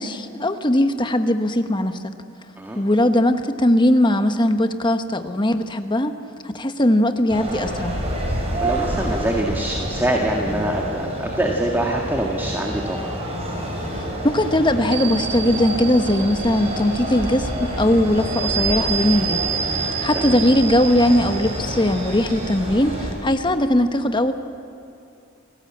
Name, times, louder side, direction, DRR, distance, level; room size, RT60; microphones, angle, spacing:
voice 1, 0.0-2.1 2.7-6.1 6.4-7.9 13.9-19.4 19.7-24.3, left 1 dB, 25° left, 7 dB, 1.2 m, -19 dB
sound 1, 7.3-23.1, equal, 30° right, 5.4 m, -28 dB
voice 2, 8.6-13.2 20.1-20.4, right 1 dB, 10° right, 0 dB, 1.8 m, -24 dB
sound 2, 14.9-22.6, right 7 dB, 55° right, 3.1 m, -30 dB
28.5 x 18.5 x 8.6 m, 2.5 s
head